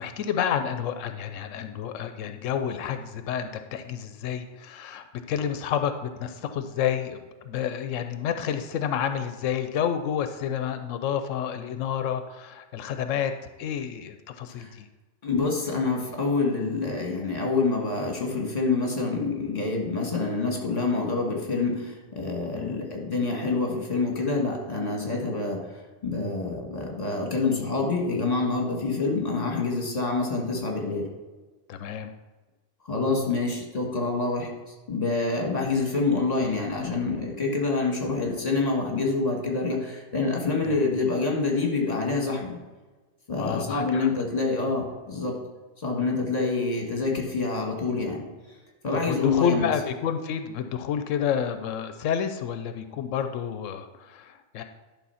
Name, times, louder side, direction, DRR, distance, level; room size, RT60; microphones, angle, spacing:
voice 1, 0.0-13.3 13.6-14.9 22.5-22.8 31.7-32.1 40.7-40.8 43.4-44.1 48.9-54.6, left 8 dB, 90° left, 8 dB, 1.0 m, -29 dB
voice 2, 15.2-25.7 26.0-31.1 32.9-42.6 43.3-45.4 45.8-48.2 48.8-49.7, left 3 dB, 30° left, 1 dB, 1.6 m, -27 dB
11.0 x 3.7 x 5.6 m, 1.2 s
omnidirectional pair, 1.3 m